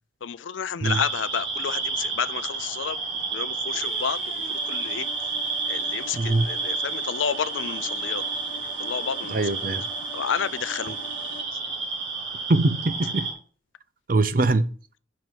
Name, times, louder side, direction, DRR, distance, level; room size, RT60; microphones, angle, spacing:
voice 1, 0.2-3.0 3.3-5.1 5.7-8.2 8.8-9.4 10.1-11.0, left 7 dB, 85° left, 0.5 m, -30 dB
sound 1, 0.8-13.3, right 4 dB, 75° right, 2.9 m, -31 dB
sound 2, 3.7-11.4, left 3 dB, 45° left, 1.1 m, -45 dB
voice 2, 6.1-6.5 9.3-9.8 12.5-13.3 14.1-14.7, right 2 dB, 45° right, 0.5 m, -22 dB
5.6 x 5.3 x 6.0 m
head